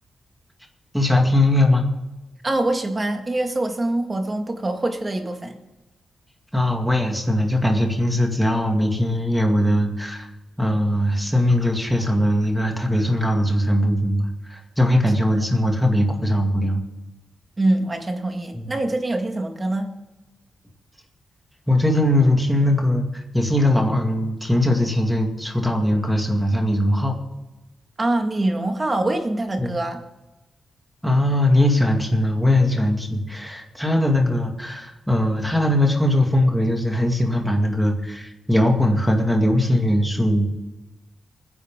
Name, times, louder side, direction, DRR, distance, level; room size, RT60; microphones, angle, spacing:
voice 1, 0.9-1.9 6.5-10.3 10.6-16.8 18.5-18.7 21.7-23.0 23.3-27.2 29.6-29.8 31.0-40.5, left 1 dB, ahead, 1 dB, 2.1 m, -20 dB
voice 2, 2.4-5.6 17.6-19.9 28.0-30.0, right 2 dB, 20° right, 4 dB, 1.8 m, -24 dB
28.0 x 10.5 x 3.7 m, 1.0 s
wide cardioid pair, 175°, 0 cm